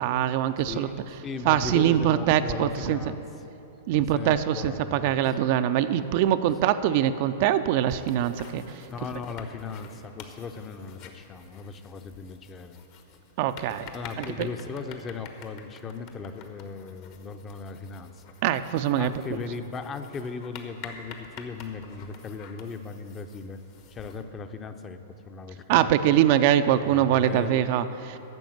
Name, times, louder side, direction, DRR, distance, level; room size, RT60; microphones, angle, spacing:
voice 1, 0.0-0.9 1.5-3.0 3.9-8.6 13.4-13.9 14.2-14.5 18.4-19.1 25.7-28.2, right 11 dB, 50° right, 11 dB, 0.4 m, -23 dB
voice 2, 0.6-3.2 3.9-5.2 8.9-12.8 13.9-18.1 19.0-23.6 23.9-25.0 25.3-26.2 26.8-27.6, left 5 dB, 25° left, 8 dB, 0.7 m, -37 dB
sound 1, 7.9-24.2, left 6 dB, 50° left, 1.2 m, -48 dB
10.5 x 7.0 x 7.7 m, 2.9 s
hypercardioid pair, 105°, 0 cm